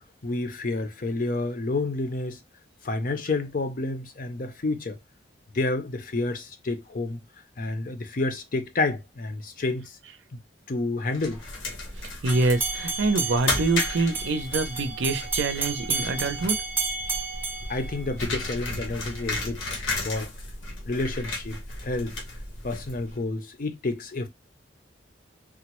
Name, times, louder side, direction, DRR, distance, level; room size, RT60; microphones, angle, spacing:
voice 1, 0.2-2.4 2.8-5.0 5.5-7.2 7.6-10.0 10.7-11.4 17.7-19.6 20.0-20.3 20.9-22.1 22.6-24.3, left 2 dB, 45° left, 0.5 m, -29 dB
sound 1, 11.1-23.2, left 2 dB, 90° left, 1.1 m, -34 dB
voice 2, 12.0-16.6, right 3 dB, 75° right, 0.5 m, -26 dB
sound 2, 12.3-18.5, right 4 dB, 10° right, 0.5 m, -31 dB
3.6 x 2.0 x 2.9 m
head